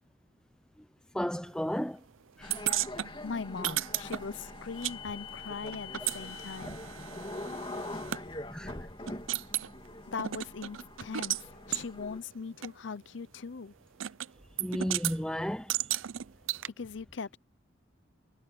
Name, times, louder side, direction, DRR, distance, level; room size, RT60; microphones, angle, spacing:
voice 1, 1.1-2.0 2.4-2.6 8.5-8.9 14.6-15.7, equal, 5° left, 0.6 m, -33 dB
sound 1, 2.4-12.2, left 2 dB, 25° left, 3.1 m, -43 dB
sound 2, 2.5-5.0 5.2-8.2 8.7-8.8 9.1-9.7 10.2-11.4 11.7-11.9 12.6-12.7 14.0-14.3 14.6-15.2 15.7-16.7, right 13 dB, 80° right, 0.5 m, -34 dB
voice 2, 3.2-6.8 10.1-13.7 16.8-17.4, left 5 dB, 65° left, 0.6 m, -40 dB
head